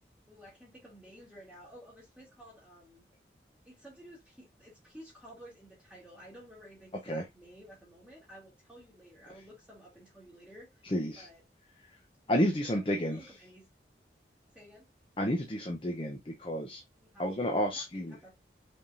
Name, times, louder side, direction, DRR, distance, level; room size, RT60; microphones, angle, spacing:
voice 1, 0.3-3.0 3.7-10.8 11.2-11.4 12.4-13.6 14.5-14.9 17.0-18.3, equal, 5° right, 2.2 m, -53 dB
voice 2, 10.8-11.3 11.8-12.0 12.3-13.3 15.2-16.8 17.2-18.2, equal, 30° left, 0.7 m, -31 dB
5.4 x 3.5 x 2.5 m
head